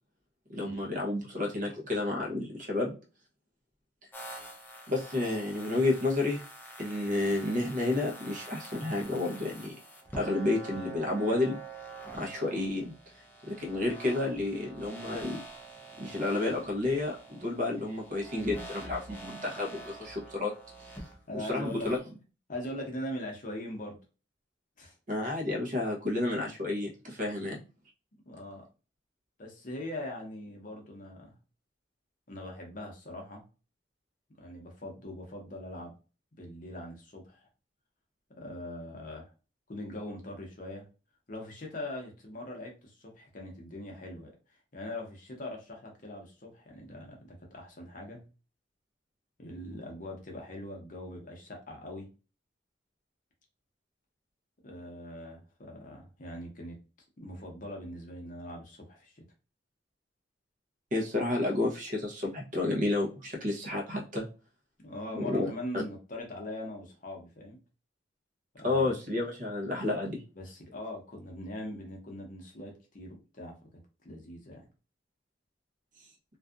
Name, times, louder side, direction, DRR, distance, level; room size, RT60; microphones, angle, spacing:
voice 1, 0.5-3.0 4.9-6.4 6.8-9.7 10.2-11.6 12.2-12.9 13.5-15.4 16.0-20.5 21.3-22.0 25.1-27.6 60.9-64.3 65.1-65.8 68.6-70.2, left 2 dB, 45° right, 0 dB, 0.8 m, -31 dB
sound 1, 4.1-22.0, right 2 dB, 10° left, 0.4 m, -46 dB
voice 2, 21.3-21.9 22.5-24.0 24.8-24.9 28.3-28.6 29.4-31.3 32.3-33.4 34.4-35.9 36.3-37.5 38.4-39.3 39.7-40.9 41.3-48.3 49.4-52.1 54.6-56.8 57.2-59.2 64.8-67.6 68.5-68.9 70.3-73.5 74.0-74.6, left 1 dB, 45° left, 1 dB, 0.7 m, -41 dB
2.6 x 2.3 x 2.3 m, 0.33 s
head